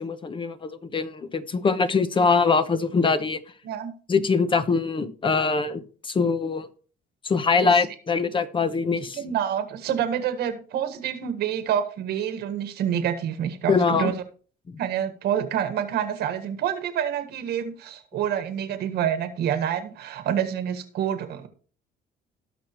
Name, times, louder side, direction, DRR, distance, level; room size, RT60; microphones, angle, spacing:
voice 1, 0.0-3.4 4.1-6.7 7.2-9.2 13.7-14.1 14.7-14.8, left 4 dB, 30° left, 11 dB, 1.0 m, -23 dB
voice 2, 9.1-14.2 14.8-21.5, right 9 dB, 75° right, 10 dB, 1.6 m, -27 dB
18.0 x 6.1 x 3.1 m, 0.40 s
cardioid pair, 110°, 17 cm